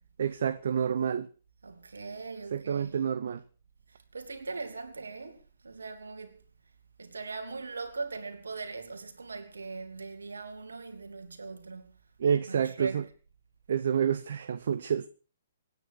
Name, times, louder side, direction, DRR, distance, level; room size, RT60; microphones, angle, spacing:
voice 1, 0.2-1.3 2.5-3.4 12.2-13.0 13.7-15.1, right 8 dB, 60° right, 0.7 m, -28 dB
voice 2, 1.6-3.0 3.9-6.4 7.0-11.9 12.5-13.0, right 4 dB, 75° right, 2.9 m, -40 dB
26.0 x 9.7 x 4.5 m
figure-of-eight pair, 125°, 0 cm